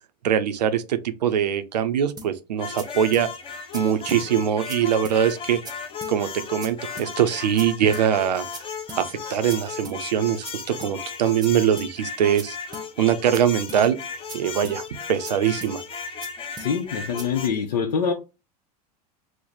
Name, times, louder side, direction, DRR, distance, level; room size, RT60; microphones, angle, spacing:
voice 1, 0.2-3.3 3.7-5.6 6.1-8.5 8.9-12.6 13.0-14.0 14.3-14.8 15.1-15.8, right 9 dB, 90° right, 0.5 m, -22 dB
sound 1, 2.2-2.3 2.8-2.9 3.1-3.3 3.7-3.8 4.1-4.2 4.7-4.8 5.0-5.2 5.6-5.7 6.0-6.1 6.6-6.7 7.0-7.1 7.6-7.7 7.9-8.1 8.5-8.6 8.9-9.0 9.5-9.6 9.8-10.0 10.4-10.5 10.8-10.9 11.4-11.5 11.8-11.9 12.4-12.5 12.7-12.9 13.3-13.4 13.7-13.8 14.3-14.4 14.6-14.8 15.2-15.3 15.6-15.7 16.2-16.3 16.6-16.7 17.2-17.3, right 3 dB, 20° right, 0.6 m, -39 dB
sound 2, 2.6-17.5, left 6 dB, 25° left, 0.7 m, -35 dB
voice 2, 16.6-18.1, left 6 dB, 85° left, 0.6 m, -24 dB
3.1 x 2.0 x 3.9 m
hypercardioid pair, 100°, 21 cm